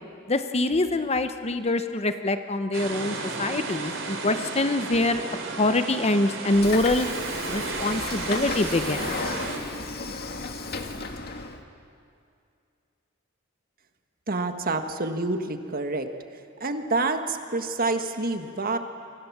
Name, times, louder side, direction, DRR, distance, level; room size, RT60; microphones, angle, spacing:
voice 1, 0.3-5.2 5.6-7.1 7.5-9.1, left 2 dB, 30° left, 9 dB, 1.0 m, -25 dB
sound 1, 2.7-9.6, right 3 dB, 65° right, 3.8 m, -33 dB
Train / Sliding door, 6.5-11.6, left 4 dB, 50° left, 1.8 m, -34 dB
voice 2, 14.3-16.1 16.6-18.8, right 3 dB, 45° right, 6 dB, 1.6 m, -27 dB
28.5 x 24.5 x 7.4 m, 2.4 s
head